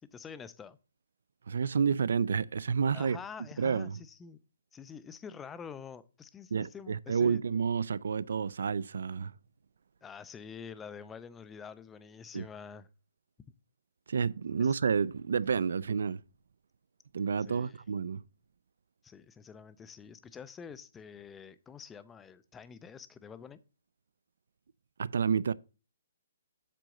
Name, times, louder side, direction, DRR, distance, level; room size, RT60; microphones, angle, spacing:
voice 1, 0.1-0.8 2.9-4.4 4.7-7.4 10.0-12.9 17.5-17.8 19.0-23.6, left 6 dB, 10° left, 0.3 m, -47 dB
voice 2, 1.5-3.2 3.6-4.0 6.5-9.3 12.3-12.5 14.1-16.2 17.1-18.2 25.0-25.5, right 6 dB, 70° right, 0.4 m, -29 dB
7.6 x 3.8 x 6.3 m
hypercardioid pair, 175°, 0 cm